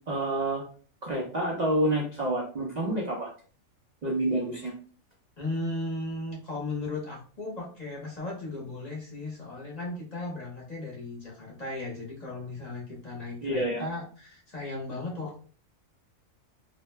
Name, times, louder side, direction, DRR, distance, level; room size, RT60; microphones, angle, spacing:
voice 1, 0.1-0.6 1.0-3.3 4.0-4.7 13.4-13.9, right 1 dB, 60° right, -1 dB, 0.4 m, -28 dB
voice 2, 5.4-15.4, left 2 dB, 35° left, -4 dB, 0.7 m, -36 dB
2.6 x 2.1 x 3.1 m, 0.41 s
omnidirectional pair, 1.5 m